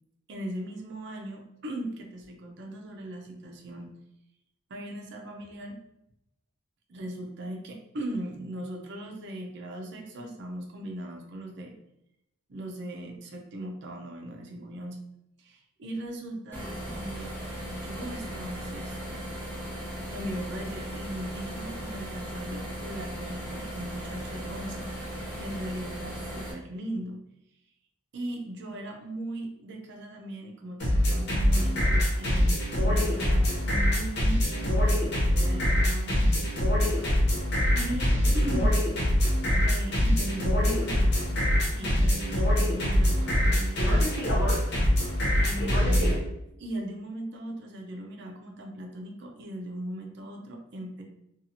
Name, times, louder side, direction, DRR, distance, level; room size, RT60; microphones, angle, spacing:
voice 1, 0.3-3.9 4.7-5.8 6.9-11.8 12.5-15.0 15.4-17.4 17.6-19.2 20.1-27.2 28.1-36.5 37.7-38.8 39.5-44.2 45.3-46.2 46.6-51.0, right 1 dB, 55° right, 1 dB, 0.5 m, -38 dB
sound 1, 16.5-26.5, equal, 10° left, 0.7 m, -37 dB
sound 2, 30.8-46.2, equal, 55° left, 0.7 m, -24 dB
2.7 x 2.3 x 2.8 m, 0.82 s
head